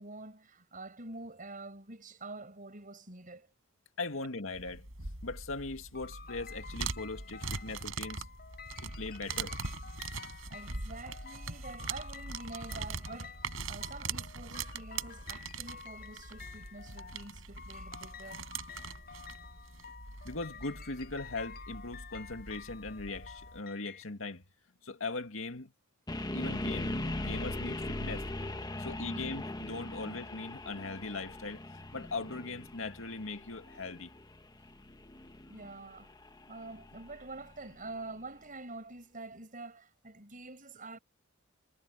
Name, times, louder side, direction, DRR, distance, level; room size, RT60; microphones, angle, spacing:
voice 1, 0.0-3.5 10.5-18.5 28.8-29.4 30.0-30.1 35.4-36.1 36.5-41.0, right 2 dB, 40° right, 6.2 m, -47 dB
voice 2, 4.0-4.9 5.2-8.3 8.8-9.6 20.2-24.4 24.8-25.7 26.3-28.3 28.8-31.6 31.9-34.1, left 3 dB, 80° left, 2.2 m, -39 dB
sound 1, 4.5-23.6, right 4 dB, 80° right, 6.4 m, -42 dB
sound 2, 5.9-24.0, left 6 dB, 50° left, 4.2 m, -51 dB
sound 3, 26.1-38.0, left 1 dB, 20° left, 1.1 m, -40 dB
head